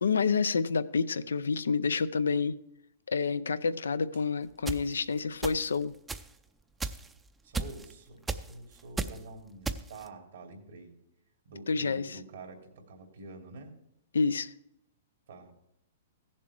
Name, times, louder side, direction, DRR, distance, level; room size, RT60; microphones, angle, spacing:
voice 1, 0.0-2.6 3.1-5.9 11.7-12.2 14.1-14.5, left 5 dB, 85° left, 0.5 m, -28 dB
sound 1, 4.7-4.8 5.4-5.7 6.1-6.3 6.8-7.1 7.5-7.9 8.3-8.5 9.0-9.2 9.6-10.1, right 4 dB, 10° right, 0.5 m, -33 dB
voice 2, 7.4-11.0 11.4-13.7 15.3-15.5, right 2 dB, 75° right, 2.6 m, -47 dB
16.0 x 7.3 x 3.1 m
hypercardioid pair, 125°, 0 cm